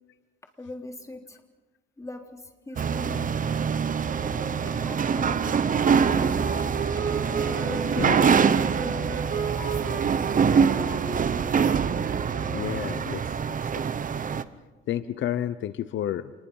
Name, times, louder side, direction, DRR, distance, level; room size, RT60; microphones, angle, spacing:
voice 1, 0.6-1.4 2.0-3.3 4.8-6.4 7.4-9.2 9.7-11.4 14.3-14.4, left 2 dB, 15° left, 3 dB, 3.4 m, -42 dB
sound 1, 2.8-14.4, right 6 dB, 40° right, 1.0 m, -24 dB
Wind instrument woodwind instrument, 4.0-13.5, right 5 dB, 65° right, 3.1 m, -36 dB
voice 2, 5.0-5.5 7.6-8.3 9.6-9.8 12.5-13.2 13.6-13.7 14.9-16.3, left 11 dB, 70° left, 14 dB, 0.8 m, -32 dB
28.0 x 20.5 x 5.6 m, 1.2 s
cardioid pair, 90°, 20 cm